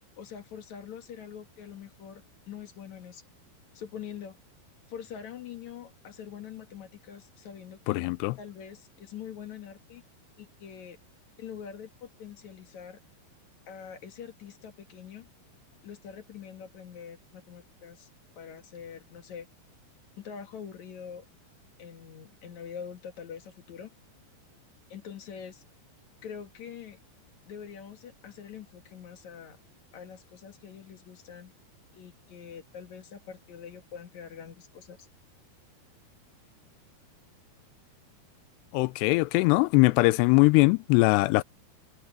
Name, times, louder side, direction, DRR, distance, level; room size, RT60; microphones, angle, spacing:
voice 1, 0.2-3.3 3.7-4.4 4.9-10.0 10.4-11.0 11.4-13.0 13.7-15.3 15.8-18.1 18.4-19.5 20.2-21.3 21.8-23.9 24.9-25.6 26.2-27.0 27.5-29.6 29.9-31.5 31.9-35.1, left 8 dB, 55° left, 2.5 m, -44 dB
voice 2, 7.9-8.3 38.7-41.4, left 23 dB, 85° left, 2.7 m, -21 dB
omnidirectional pair, 4.9 m